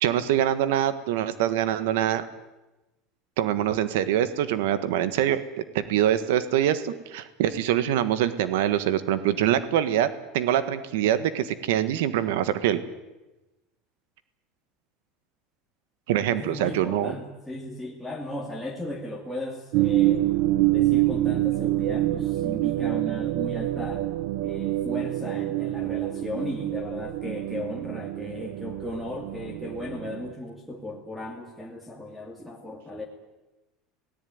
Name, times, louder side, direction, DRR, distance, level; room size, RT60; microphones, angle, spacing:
voice 1, 0.0-2.2 3.4-5.4 5.7-12.8 16.1-17.1, right 11 dB, 85° right, 13 dB, 1.5 m, -24 dB
voice 2, 16.3-20.3 20.7-24.1 24.4-33.1, left 1 dB, ahead, 3 dB, 2.6 m, -36 dB
sound 1, 19.7-30.3, right 15 dB, 65° right, 1.1 m, -26 dB
25.5 x 18.5 x 9.5 m, 1.1 s
cardioid pair, 150°, 0 cm